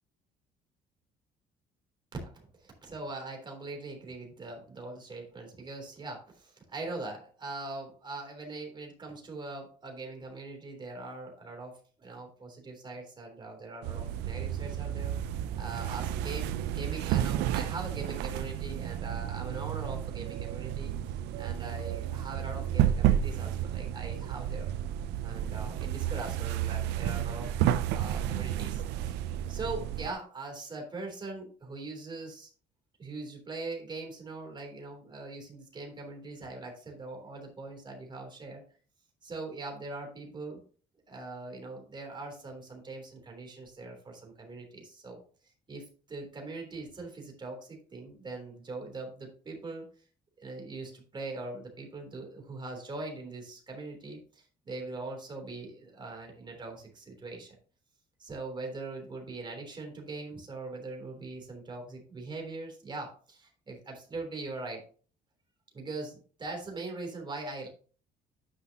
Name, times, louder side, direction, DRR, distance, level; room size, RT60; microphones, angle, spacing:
voice 1, 2.1-15.1 15.5-24.7 25.2-27.5 27.9-29.2 29.5-32.5 33.0-38.6 39.2-40.6 41.1-45.2 45.7-49.9 50.4-57.6 58.2-64.8 65.7-67.7, right 3 dB, 25° right, 1 dB, 3.3 m, -41 dB
sound 1, 13.8-30.1, right 11 dB, 90° right, 0.5 m, -31 dB
9.7 x 5.9 x 2.9 m, 0.41 s
cardioid pair, 110°, 17 cm